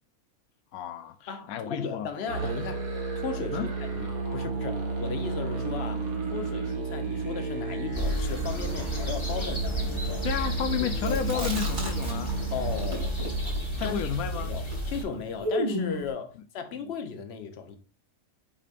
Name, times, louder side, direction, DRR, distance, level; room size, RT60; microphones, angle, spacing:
voice 1, 0.7-2.1 3.5-3.7 10.2-12.4 13.8-14.5, left 8 dB, 85° left, 1.0 m, -32 dB
voice 2, 1.3-2.9 3.2-10.3 10.8-11.5 12.5-13.1 13.8-14.0 14.3-17.8, left 6 dB, 50° left, 1.1 m, -36 dB
Musical instrument, 2.3-13.9, right 4 dB, 90° right, 1.9 m, -33 dB
sound 1, 7.9-15.0, equal, 20° left, 1.3 m, -32 dB
Chewing mastication, 11.0-12.4 12.7-16.1, equal, 65° right, 3.4 m, -33 dB
7.5 x 5.0 x 2.5 m
omnidirectional pair, 1.5 m